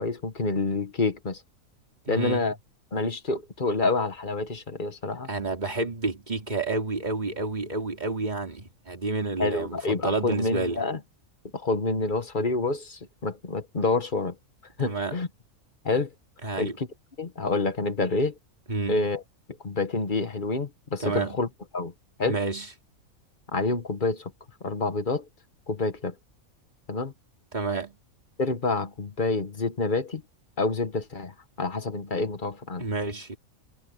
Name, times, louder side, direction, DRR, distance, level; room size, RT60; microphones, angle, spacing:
voice 1, 0.0-1.4 2.1-2.6 2.9-5.3 9.4-11.0 11.5-14.4 14.8-15.3 15.8-16.1 16.6-16.9 17.2-18.4 18.9-19.2 19.6-21.5 21.7-21.9 22.2-22.4 23.5-24.3 24.6-25.3 25.7-26.1 26.9-27.1 28.4-30.2 30.6-32.8, left 3 dB, 35° left, 1.4 m, -27 dB
voice 2, 2.1-2.5 5.3-10.8 14.8-15.2 16.4-16.8 18.7-19.1 21.0-21.4 22.2-22.7 27.5-27.9 32.8-33.4, right 3 dB, 30° right, 3.4 m, -30 dB
omnidirectional pair, 1.5 m